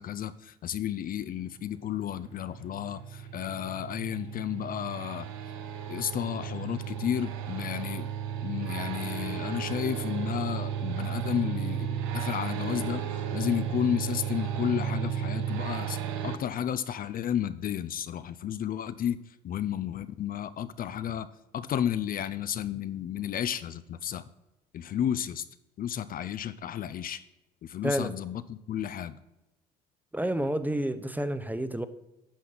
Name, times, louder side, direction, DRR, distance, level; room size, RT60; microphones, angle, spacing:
voice 1, 0.0-5.3 5.9-8.1 8.4-16.0 16.2-21.3 21.5-24.3 24.7-25.4 25.8-27.2 27.6-29.2, left 10 dB, 45° left, 0.5 m, -32 dB
sound 1, 1.6-16.4, right 8 dB, 75° right, 0.9 m, -34 dB
voice 2, 27.8-28.1 30.1-31.9, right 1 dB, 10° right, 0.6 m, -29 dB
10.5 x 5.9 x 4.0 m
hypercardioid pair, 65°, 21 cm